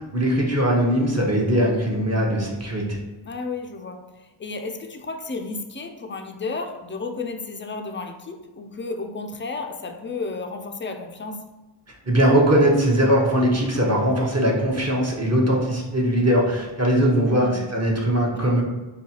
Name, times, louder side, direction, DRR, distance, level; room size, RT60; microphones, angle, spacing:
voice 1, 0.0-3.0 12.1-18.6, right 1 dB, 30° right, -2 dB, 0.8 m, -20 dB
voice 2, 3.2-11.5 17.3-17.7 18.4-18.6, left 3 dB, 25° left, 5 dB, 0.3 m, -33 dB
4.6 x 2.3 x 2.8 m, 1.1 s
wide cardioid pair, 50°, 50 cm